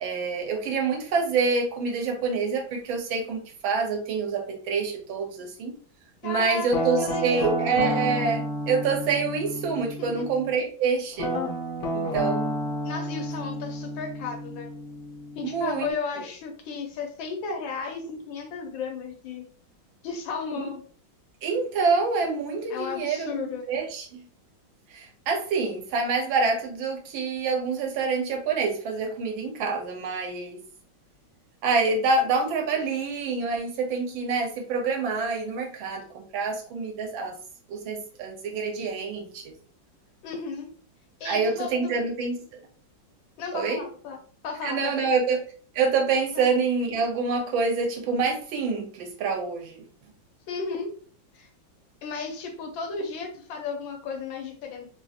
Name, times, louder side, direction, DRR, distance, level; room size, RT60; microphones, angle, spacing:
voice 1, 0.0-5.7 6.2-11.3 11.9-12.5 15.4-16.3 20.5-20.7 21.4-24.2 24.9-30.6 31.6-37.3 37.7-39.5 41.2-42.4 43.5-43.8 44.6-45.4 45.7-49.8, right 4 dB, 80° right, 2 dB, 1.6 m, -27 dB
voice 2, 6.2-7.7 10.0-10.2 12.8-14.7 15.3-19.5 20.0-20.8 22.7-23.6 40.2-40.7 41.2-41.7 43.4-44.2 44.4-45.1 46.3-46.5 50.5-50.9 51.3-51.5 52.0-54.9, left 5 dB, 80° left, 3 dB, 1.5 m, -34 dB
Guitar, 6.7-10.5 11.2-15.9, equal, 60° left, 0.9 m, -31 dB
3.7 x 2.4 x 2.6 m, 0.42 s
omnidirectional pair, 2.1 m